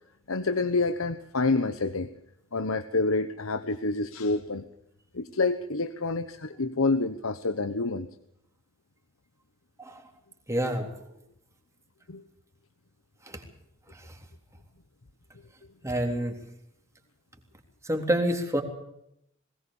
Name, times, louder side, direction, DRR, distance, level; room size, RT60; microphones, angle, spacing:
voice 1, 0.3-2.1 2.5-4.6 5.1-8.1 12.1-12.2, left 3 dB, 80° left, 11 dB, 1.1 m, -27 dB
voice 2, 10.5-10.9 13.3-13.4 15.8-16.4 17.8-18.6, right 1 dB, 15° right, 3 dB, 3.6 m, -27 dB
21.0 x 19.0 x 7.1 m, 0.77 s
head